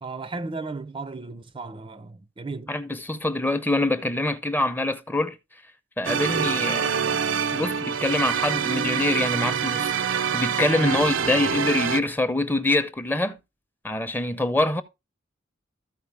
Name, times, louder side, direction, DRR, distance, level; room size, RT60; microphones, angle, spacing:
voice 1, 0.0-2.7 6.3-6.5 10.7-11.0, right 3 dB, 25° right, 0.5 m, -35 dB
voice 2, 2.7-5.4 6.0-7.2 7.5-13.4 13.8-14.8, left 2 dB, 10° left, 0.7 m, -25 dB
sound 1, 6.0-12.0, right 7 dB, 75° right, 0.6 m, -26 dB
14.0 x 4.7 x 3.3 m
head